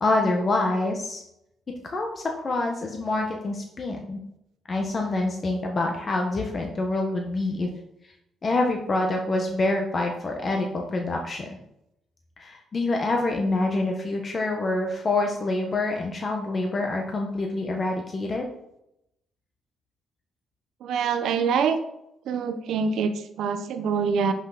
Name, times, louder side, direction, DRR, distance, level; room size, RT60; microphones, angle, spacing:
voice 1, 0.0-1.2 1.7-4.2 4.7-7.7 8.4-11.6 12.4-18.5, left 2 dB, 40° left, 2 dB, 1.3 m, -26 dB
voice 2, 20.8-21.8 22.2-24.3, right 6 dB, 75° right, 8 dB, 1.0 m, -25 dB
10.5 x 6.1 x 4.2 m, 0.82 s
cardioid pair, 90°, 0 cm